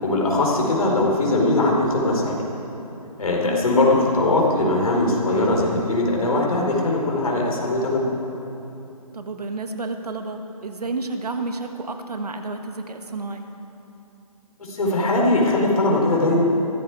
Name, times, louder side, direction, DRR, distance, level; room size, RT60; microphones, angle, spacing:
voice 1, 0.0-2.4 3.2-8.0 14.7-16.4, left 2 dB, 65° left, -1 dB, 4.4 m, -20 dB
voice 2, 9.1-13.5, right 3 dB, 85° right, 6 dB, 1.5 m, -31 dB
16.5 x 15.0 x 4.8 m, 2.9 s
hypercardioid pair, 155°, 19 cm